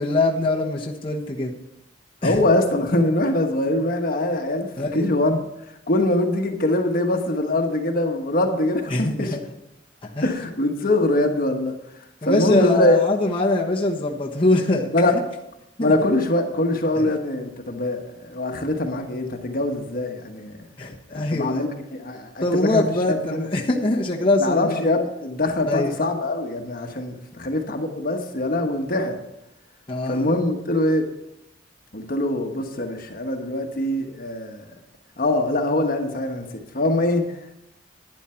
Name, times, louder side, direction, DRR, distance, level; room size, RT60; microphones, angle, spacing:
voice 1, 0.0-1.5 2.2-2.4 4.8-5.1 8.9-9.4 10.0-10.4 12.2-14.9 15.8-15.9 20.8-21.7 22.4-24.8 25.7-25.9 29.9-30.3, left 2 dB, 30° left, -2 dB, 1.1 m, -23 dB
voice 2, 2.2-5.4 5.9-9.4 10.2-11.7 12.2-13.0 14.9-15.1 15.8-20.5 21.1-23.5 24.4-29.2 30.1-31.1 31.9-34.6 35.2-37.3, left 1 dB, 50° left, 4 dB, 1.3 m, -23 dB
11.5 x 10.0 x 4.5 m, 0.86 s
head